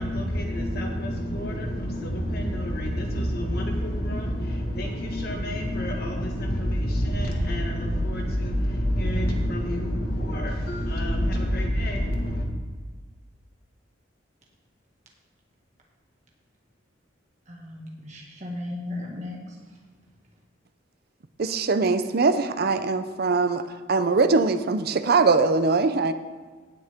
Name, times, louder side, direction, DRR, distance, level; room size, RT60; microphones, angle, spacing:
voice 1, 0.0-12.5, equal, 55° left, 2 dB, 1.7 m, -27 dB
voice 2, 17.5-19.5, left 2 dB, 40° right, -3 dB, 1.9 m, -36 dB
voice 3, 21.4-23.6 23.9-26.1, right 4 dB, 55° right, 10 dB, 0.6 m, -22 dB
17.0 x 6.6 x 3.6 m, 1.4 s
head